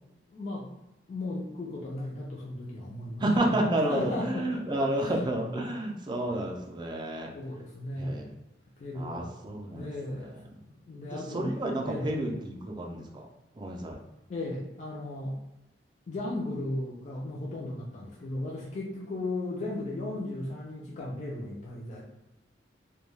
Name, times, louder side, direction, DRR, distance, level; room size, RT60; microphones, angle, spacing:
voice 1, 0.3-0.7 1.1-3.2 3.5-3.6 3.9-4.8 7.3-8.3 8.8-9.3 9.7-10.4 10.7-11.5 11.8-12.1 14.3-15.4 16.1-22.0, left 2 dB, 40° left, -4 dB, 0.4 m, -36 dB
voice 2, 3.2-7.3 8.0-8.3 8.9-10.6 11.1-13.3 13.6-14.0, right 1 dB, 25° right, 0 dB, 0.4 m, -31 dB
2.2 x 2.2 x 3.1 m, 0.96 s
head